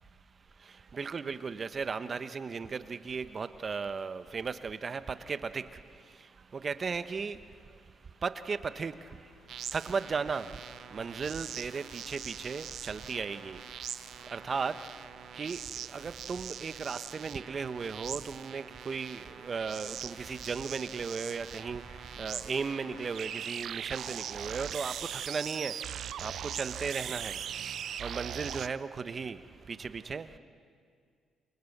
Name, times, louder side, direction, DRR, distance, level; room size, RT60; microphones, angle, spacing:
voice 1, 0.9-5.0 5.3-5.6 6.6-7.4 8.2-8.9 9.7-10.5 10.9-13.6 14.3-14.7 15.4-15.6 15.9-21.8 22.2-25.7 26.2-27.4 28.0-29.4 29.8-30.4, right 5 dB, 40° right, 12 dB, 1.1 m, -35 dB
sound 1, 8.5-25.2, left 4 dB, 85° left, 3.8 m, -58 dB
sound 2, 9.5-28.7, right 9 dB, 65° right, 0.6 m, -41 dB
29.0 x 23.5 x 6.7 m, 2.1 s
cardioid pair, 90°, 0 cm